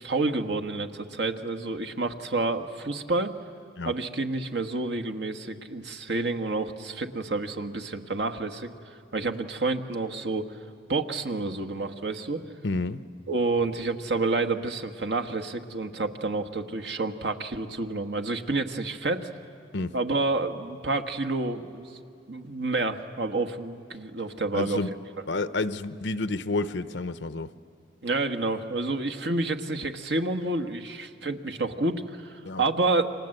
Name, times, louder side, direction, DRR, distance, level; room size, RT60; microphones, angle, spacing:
voice 1, 0.0-3.3 3.8-8.7 9.1-10.5 10.9-12.4 13.3-19.3 19.9-22.0 22.3-24.8 28.0-33.1, right 3 dB, 70° right, 7 dB, 1.5 m, -29 dB
voice 2, 12.6-13.0 19.7-20.0 24.5-24.9 25.3-27.5 32.4-32.6, left 2 dB, 75° left, 13 dB, 0.8 m, -29 dB
29.5 x 25.5 x 7.9 m, 2.6 s
head